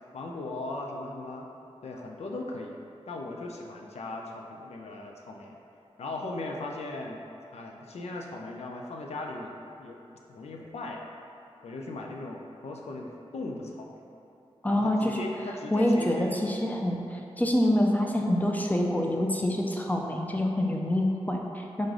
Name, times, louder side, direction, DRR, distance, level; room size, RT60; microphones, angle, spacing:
voice 1, 0.1-1.5 1.8-2.8 3.1-5.6 6.0-7.2 7.5-10.0 10.3-11.0 11.6-13.9 14.7-16.3, left 2 dB, 85° left, 0 dB, 0.4 m, -38 dB
voice 2, 14.6-15.2 15.7-21.9, left 1 dB, 15° left, 0 dB, 0.5 m, -26 dB
4.0 x 3.1 x 3.7 m, 2.8 s
cardioid pair, 55°, 11 cm